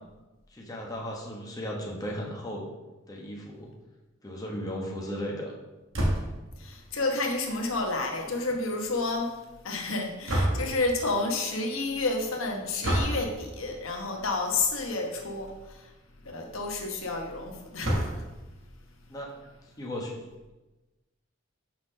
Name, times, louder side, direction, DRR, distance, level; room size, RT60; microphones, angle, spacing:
voice 1, 0.5-2.7 3.1-3.7 4.2-5.5 19.1-19.3 19.8-20.2, equal, 20° left, -2 dB, 1.1 m, -36 dB
sound 1, 5.9-6.5 10.3-10.9 12.8-13.3 14.5-14.7 15.1-15.2 15.5-15.6 17.8-18.4, right 1 dB, 70° right, 1.5 m, -27 dB
voice 2, 6.6-9.3 9.6-15.9 16.2-18.2, left 3 dB, 85° left, 2 dB, 1.1 m, -30 dB
5.8 x 4.5 x 6.2 m, 1.1 s
head